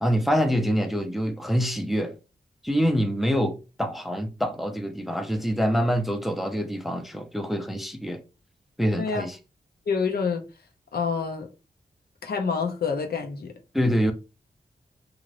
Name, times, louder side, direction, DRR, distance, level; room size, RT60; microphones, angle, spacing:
voice 1, 0.0-2.1 2.6-8.2 8.8-9.4 13.7-14.1, equal, ahead, 0.4 m, -25 dB
voice 2, 9.9-10.4 10.9-11.5 12.2-13.5, left 5 dB, 75° left, 0.6 m, -27 dB
2.5 x 2.5 x 3.2 m
wide cardioid pair, 90°, 16 cm